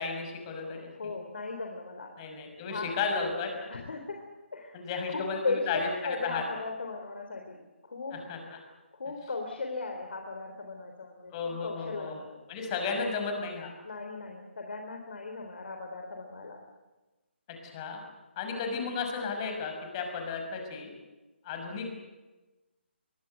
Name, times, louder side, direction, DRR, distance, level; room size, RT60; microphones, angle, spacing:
voice 1, 0.0-0.9 2.2-3.5 4.7-6.4 8.1-8.4 11.3-12.2 12.5-13.7 17.6-18.0 18.4-20.9 21.4-21.9, left 5 dB, 25° left, 4 dB, 6.0 m, -33 dB
voice 2, 1.0-2.1 2.7-2.9 3.7-4.2 4.5-4.8 5.1-8.2 8.9-12.4 13.8-16.6, left 3 dB, 60° left, 3 dB, 3.6 m, -37 dB
23.0 x 22.5 x 8.1 m, 1.2 s
figure-of-eight pair, 145°, 6 cm